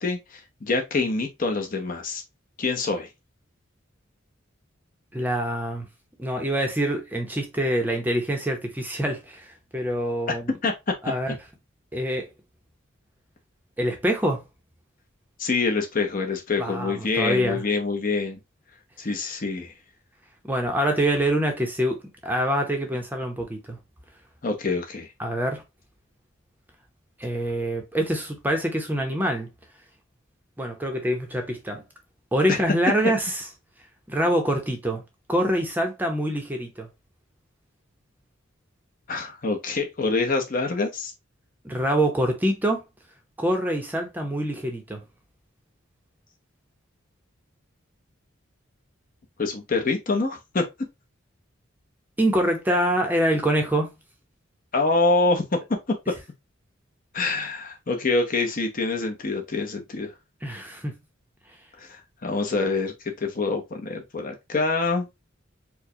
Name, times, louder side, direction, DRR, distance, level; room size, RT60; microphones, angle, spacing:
voice 1, 0.0-2.2 2.6-3.1 10.6-10.7 15.4-18.4 19.0-19.7 24.4-25.1 39.1-41.1 49.4-50.7 54.7-55.6 57.1-60.1 61.8-62.9 63.2-65.1, left 3 dB, 45° left, 0.7 m, -25 dB
voice 2, 5.1-5.9 6.2-10.5 11.0-11.4 11.9-12.3 13.8-14.4 16.6-17.6 20.5-22.0 22.2-23.8 25.2-25.6 27.2-29.5 30.6-31.8 32.3-33.4 34.1-35.0 35.3-36.9 41.6-42.8 43.4-45.0 52.2-53.9 60.4-60.9, right 1 dB, 10° right, 0.7 m, -25 dB
4.6 x 2.2 x 2.7 m
head